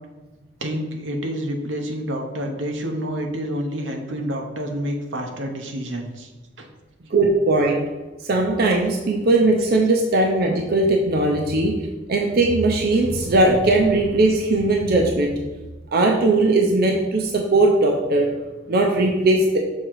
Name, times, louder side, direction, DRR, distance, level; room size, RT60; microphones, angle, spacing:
voice 1, 0.6-6.3 6.6-6.7, equal, 85° right, 2 dB, 1.0 m, -28 dB
voice 2, 7.1-7.8 8.2-11.7 12.1-15.4 15.9-18.3 18.7-19.6, right 2 dB, 55° right, 1 dB, 0.7 m, -19 dB
6.5 x 3.7 x 4.7 m, 1.2 s
head